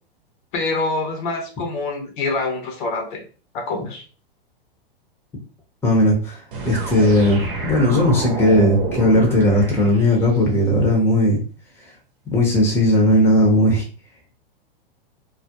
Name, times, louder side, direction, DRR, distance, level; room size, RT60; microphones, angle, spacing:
voice 1, 0.5-3.2 3.5-4.0, left 3 dB, 55° left, 4 dB, 0.7 m, -25 dB
voice 2, 5.8-11.4 12.3-13.8, left 1 dB, 10° left, -1 dB, 0.7 m, -17 dB
sound 1, 6.5-10.4, right 3 dB, 65° right, 0.8 m, -29 dB
2.3 x 2.1 x 2.8 m, 0.36 s
hypercardioid pair, 115°, 29 cm